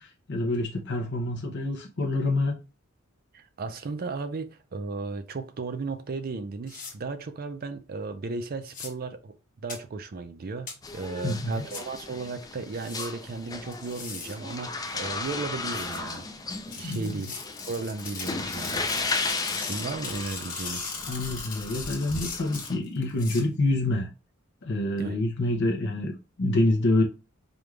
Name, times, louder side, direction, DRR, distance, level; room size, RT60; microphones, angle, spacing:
voice 1, 0.0-2.6 11.2-11.6 16.8-17.3 21.1-24.1 24.6-26.1 26.4-27.0, left 2 dB, 55° left, 0.7 m, -27 dB
voice 2, 3.3-9.3 9.6-16.3 16.7-17.3 17.6-19.1 19.6-20.9 25.0-25.2, right 3 dB, 45° right, 0.4 m, -35 dB
sound 1, 6.7-6.9 8.7-8.9 9.7-9.8 10.7-10.8 11.7-11.8 12.7-13.1 13.7-14.3 15.7-16.0 16.7-23.4, left 5 dB, 40° left, 1.3 m, -38 dB
sound 2, 10.8-22.8, left 3 dB, 15° left, 0.4 m, -35 dB
5.0 x 2.3 x 3.1 m
head